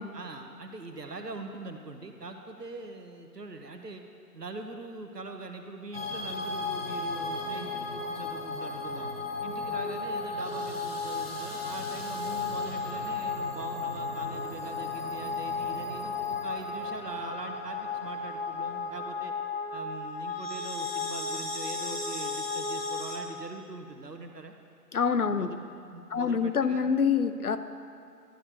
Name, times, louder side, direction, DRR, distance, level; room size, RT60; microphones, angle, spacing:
voice 1, 0.1-4.0 4.3-9.1 9.4-19.3 19.7-24.5 25.3-26.9, right 3 dB, 75° right, 5 dB, 1.1 m, -42 dB
sound 1, 5.9-23.2, left 3 dB, 40° left, 1.0 m, -34 dB
voice 2, 24.9-25.5 26.1-27.6, left 6 dB, 65° left, 10 dB, 0.6 m, -26 dB
12.0 x 4.3 x 8.0 m, 2.4 s
figure-of-eight pair, 155°, 48 cm